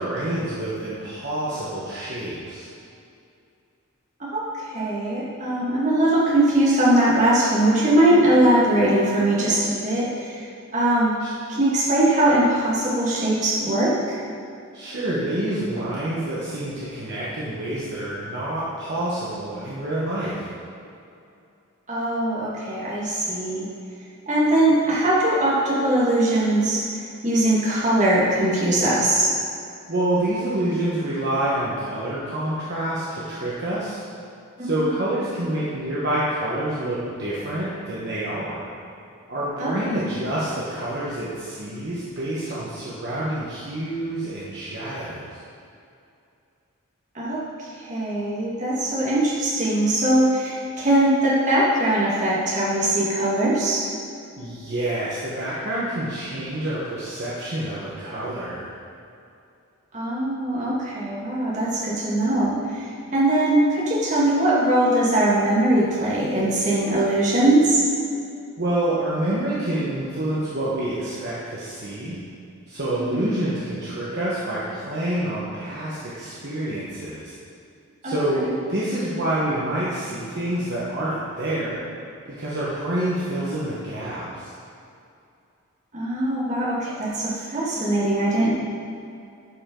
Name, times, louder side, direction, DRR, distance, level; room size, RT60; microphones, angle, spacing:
voice 1, 0.0-2.7 11.2-11.3 14.7-20.4 29.9-34.0 34.6-38.7 39.3-45.4 54.4-58.7 68.6-72.2 72.7-77.3 78.0-78.4 78.7-81.8 82.2-84.5, right 1 dB, 50° right, -8 dB, 1.1 m, -27 dB
voice 2, 4.2-10.4 10.7-11.1 11.5-14.2 21.9-23.7 24.3-26.8 27.2-29.3 34.6-34.7 39.6-39.7 47.2-53.9 59.9-62.9 63.1-67.8 73.1-73.3 78.0-78.5 85.9-88.5, right 1 dB, 35° right, -6 dB, 1.8 m, -21 dB
11.5 x 5.2 x 3.8 m, 2.6 s
head